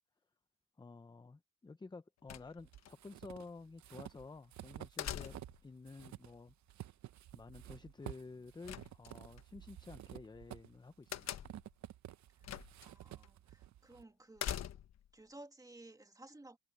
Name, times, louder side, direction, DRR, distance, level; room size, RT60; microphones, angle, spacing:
voice 1, 0.8-5.3 5.6-6.5 7.3-11.4, left 3 dB, 15° left, 0.7 m, -52 dB
sound 1, 2.3-2.9 5.0-5.7 8.7-9.4 11.1-11.7 12.4-12.9 13.2-13.3 14.4-15.1, left 11 dB, 55° left, 1.1 m, -42 dB
sound 2, 2.6-5.6 5.9-14.0, right 12 dB, 60° right, 0.9 m, -52 dB
voice 2, 12.8-14.6 15.1-16.6, right 2 dB, 10° right, 2.5 m, -56 dB
cardioid pair, 120°, 31 cm